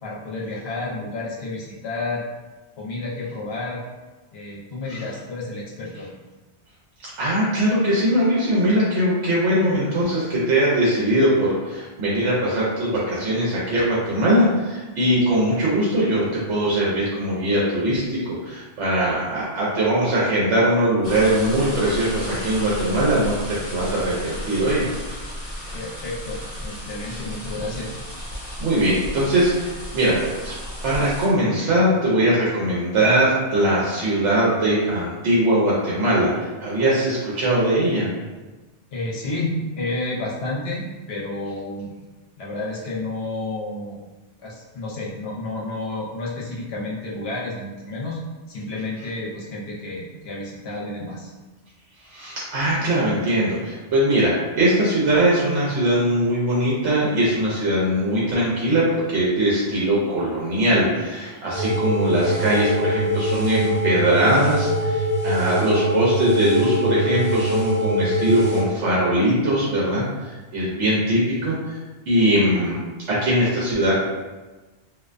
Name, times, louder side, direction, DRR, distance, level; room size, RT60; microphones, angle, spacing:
voice 1, 0.0-2.2 2.8-3.8 4.3-6.1 25.7-28.0 38.9-41.9 42.4-44.0 44.4-48.2 48.5-51.3, left 2 dB, 65° left, -4 dB, 0.9 m, -30 dB
voice 2, 7.2-23.3 23.7-24.8 27.1-27.2 28.6-30.5 30.8-38.1 52.1-71.8 72.1-72.8 73.1-73.9, right 1 dB, 85° right, -6 dB, 0.9 m, -21 dB
sound 1, 21.0-31.3, equal, 40° right, 1.0 m, -33 dB
sound 2, 61.5-68.6, equal, 15° left, 0.8 m, -23 dB
2.4 x 2.1 x 2.4 m, 1.2 s
omnidirectional pair, 1.2 m